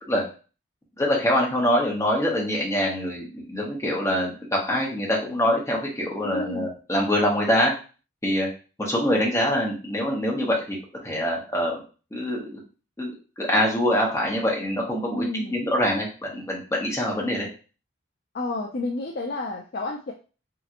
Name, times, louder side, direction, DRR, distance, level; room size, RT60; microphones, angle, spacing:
voice 1, 1.0-7.7 8.2-8.5 8.8-10.8 11.0-11.8 12.1-12.6 13.0-13.1 13.4-17.5, equal, 15° left, -2 dB, 0.7 m, -24 dB
voice 2, 6.2-6.7 15.1-15.6 18.3-20.1, left 2 dB, 45° left, 0 dB, 0.3 m, -30 dB
3.2 x 2.9 x 2.4 m, 0.35 s
head